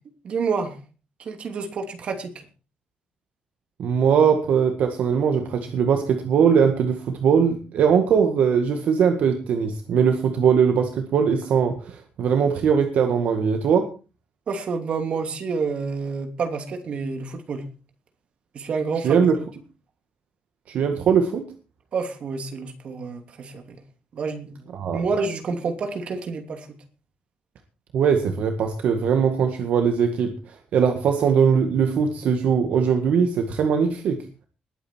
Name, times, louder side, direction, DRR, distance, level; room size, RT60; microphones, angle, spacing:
voice 1, 0.2-0.8 1.2-2.5 14.5-17.6 18.5-19.5 21.9-23.8 24.1-26.7, right 4 dB, 45° right, 6 dB, 2.8 m, -29 dB
voice 2, 3.8-13.9 19.0-19.3 20.7-21.4 24.7-25.0 27.9-34.2, right 6 dB, 65° right, 5 dB, 1.8 m, -20 dB
20.5 x 9.1 x 4.5 m, 0.34 s
cardioid pair, 165°, 3 cm